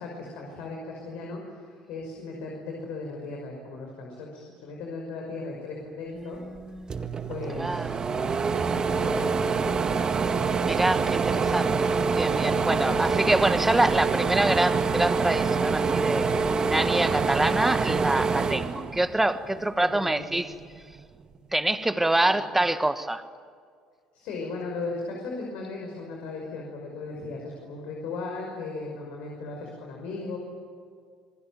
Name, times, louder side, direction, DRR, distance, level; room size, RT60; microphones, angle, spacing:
voice 1, 0.0-6.4 7.3-10.0 12.5-13.2 19.5-20.2 22.2-22.4 24.1-30.4, left 3 dB, 75° left, 0 dB, 5.7 m, -37 dB
voice 2, 6.2-7.0 7.6-8.0 10.6-11.9 12.1-20.5 21.5-23.2, right 1 dB, 10° right, 10 dB, 1.5 m, -26 dB
sound 1, 6.6-6.7 6.9-19.5 19.9-21.1, right 5 dB, 35° right, 1.9 m, -26 dB
27.5 x 20.5 x 9.4 m, 2.1 s
supercardioid pair, 85°, 2 cm